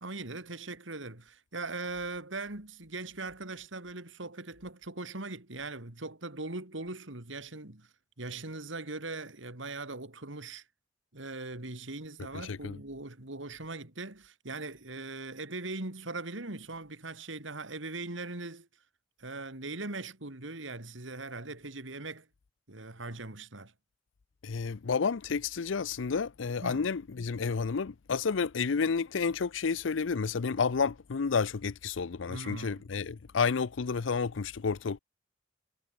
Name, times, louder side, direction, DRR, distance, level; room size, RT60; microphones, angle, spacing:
voice 1, 0.0-7.9 8.2-10.6 11.1-18.7 19.2-22.3 22.7-23.7 26.6-26.8 32.3-32.8, right 3 dB, 80° right, 3.1 m, -40 dB
voice 2, 12.3-12.8 24.4-35.0, left 5 dB, 85° left, 0.6 m, -30 dB
head